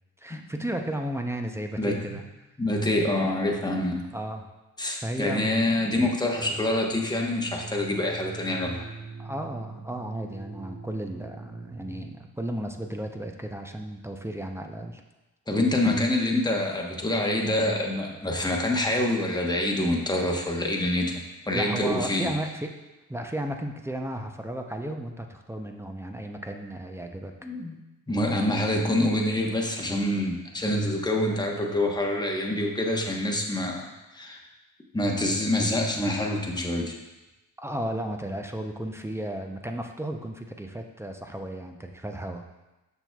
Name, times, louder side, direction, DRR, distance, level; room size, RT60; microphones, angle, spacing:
voice 1, 0.2-2.2 4.1-4.4 5.0-5.9 9.2-15.0 21.5-22.7 23.1-27.3 37.6-42.4, right 1 dB, 5° right, 4 dB, 0.6 m, -34 dB
voice 2, 1.8-2.2 2.6-4.0 4.8-8.9 15.5-21.1 21.5-22.3 27.4-27.8 28.1-33.8 34.1-34.4 34.9-36.9, left 1 dB, 10° left, 0 dB, 1.0 m, -26 dB
sound 1, 6.3-12.1, right 4 dB, 25° right, 1.0 m, -41 dB
6.8 x 5.9 x 2.3 m, 1.1 s
cardioid pair, 75°, 36 cm